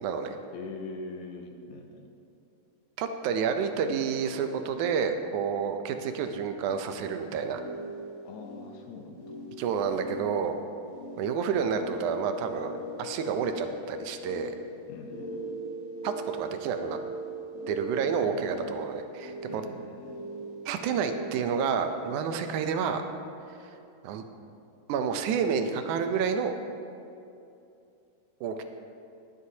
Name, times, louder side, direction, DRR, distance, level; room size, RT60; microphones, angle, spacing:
voice 1, 0.0-0.4 3.0-7.6 9.6-10.6 11.2-12.7 13.0-14.6 16.0-17.0 17.7-19.6 20.7-23.0 24.0-24.2 24.9-26.5 28.4-28.6, right 6 dB, 80° right, 7 dB, 2.1 m, -29 dB
voice 2, 0.5-2.1 8.3-9.4 14.9-15.3 18.2-18.8 19.5-20.2, left 3 dB, 75° left, 4 dB, 2.1 m, -43 dB
sound 1, 6.9-22.3, right 1 dB, 45° left, 2.8 m, -40 dB
20.0 x 7.9 x 2.8 m, 2.6 s
omnidirectional pair, 3.5 m